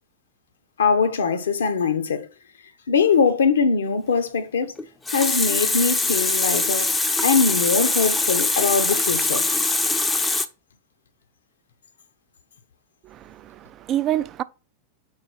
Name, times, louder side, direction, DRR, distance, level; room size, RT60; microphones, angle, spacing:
voice 1, 0.8-2.3 2.9-4.7 5.1-9.5, left 5 dB, 65° left, 0.9 m, -22 dB
Water tap faucet, 4.8-10.5, left 3 dB, 10° left, 0.6 m, -22 dB
voice 2, 13.0-14.4, right 12 dB, 30° right, 0.4 m, -27 dB
4.8 x 4.5 x 4.4 m
figure-of-eight pair, 90°, 0 cm